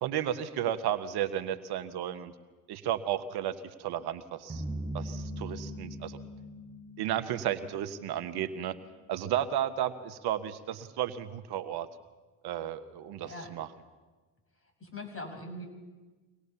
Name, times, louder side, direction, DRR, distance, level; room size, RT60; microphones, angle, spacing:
voice 1, 0.0-2.3 2.7-4.6 4.9-6.2 7.0-8.8 9.1-11.9 12.4-13.7, right 11 dB, 60° right, 11 dB, 1.2 m, -33 dB
sound 1, 4.5-8.9, equal, 10° right, 7.2 m, -41 dB
voice 2, 14.8-15.7, left 1 dB, 30° left, 5 dB, 6.6 m, -41 dB
24.5 x 18.5 x 6.9 m, 1.3 s
hypercardioid pair, 70°, 43 cm